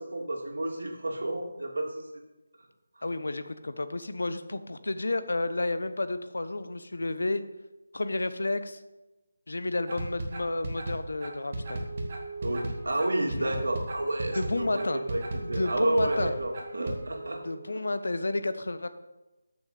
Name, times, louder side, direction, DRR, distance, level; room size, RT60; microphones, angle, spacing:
voice 1, 0.0-2.2 3.0-3.1 12.4-15.2 15.5-17.4 17.7-17.8, right 1 dB, 80° right, 1 dB, 2.6 m, -31 dB
voice 2, 3.0-7.4 7.9-8.8 9.5-11.8 13.4-13.5 14.3-15.0 15.4-16.4 17.4-18.9, left 2 dB, 75° left, 12 dB, 1.0 m, -31 dB
sound 1, 9.9-17.0, right 1 dB, 25° right, 1.4 m, -35 dB
Wind instrument woodwind instrument, 11.2-18.0, right 3 dB, 40° right, 3.0 m, -43 dB
13.0 x 6.9 x 5.1 m, 1.0 s
figure-of-eight pair, 180°, 0 cm